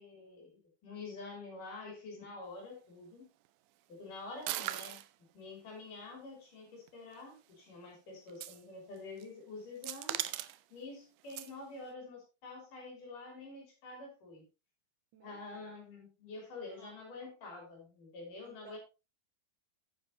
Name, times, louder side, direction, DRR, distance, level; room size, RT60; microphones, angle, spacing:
voice 1, 0.0-3.3 3.9-5.0 5.3-10.2 10.7-14.4 15.2-18.8, left 3 dB, 60° left, 0 dB, 4.9 m, -47 dB
sound 1, 4.4-5.1 6.9-7.0 8.3-8.6 9.0-9.2 9.8-10.6 11.3-11.5, right 15 dB, 80° right, 2.2 m, -38 dB
voice 2, 15.1-15.7 16.7-16.9 18.4-18.8, right 6 dB, 60° right, 5 dB, 3.0 m, -58 dB
10.5 x 9.6 x 2.9 m, 0.29 s
omnidirectional pair, 4.2 m